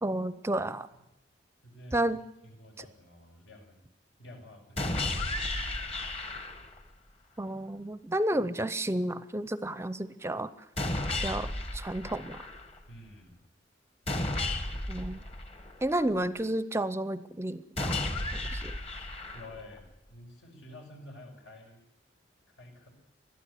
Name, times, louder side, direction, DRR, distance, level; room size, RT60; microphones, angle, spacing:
voice 1, 0.0-0.9 1.9-2.2 7.4-10.5 11.2-12.4 14.9-15.2 15.8-17.9 18.5-18.7, right 1 dB, 15° right, 14 dB, 0.6 m, -31 dB
voice 2, 1.6-2.1 2.4-3.8 4.2-6.2 12.9-13.4 19.3-19.8 20.1-21.8 22.5-22.9, left 1 dB, 80° left, 3 dB, 5.9 m, -50 dB
sound 1, 4.8-6.8 10.8-12.8 14.1-16.1 17.8-19.8, left 2 dB, 35° left, 1.7 m, -33 dB
21.0 x 13.0 x 9.8 m, 0.87 s
head